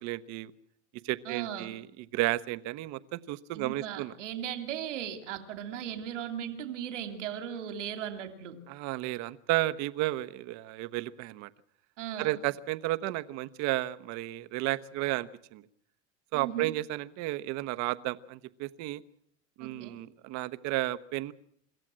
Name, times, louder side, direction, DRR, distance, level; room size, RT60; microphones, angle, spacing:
voice 1, 0.0-0.5 1.0-4.1 8.7-11.5 12.2-15.7 16.3-19.0 19.6-21.3, right 17 dB, 50° right, 11 dB, 1.1 m, -33 dB
voice 2, 1.2-1.7 3.5-8.6 12.0-12.4 16.3-16.7 19.6-20.0, right 9 dB, 85° right, 7 dB, 2.8 m, -37 dB
26.0 x 14.0 x 7.6 m, 0.69 s
supercardioid pair, 120°, 36 cm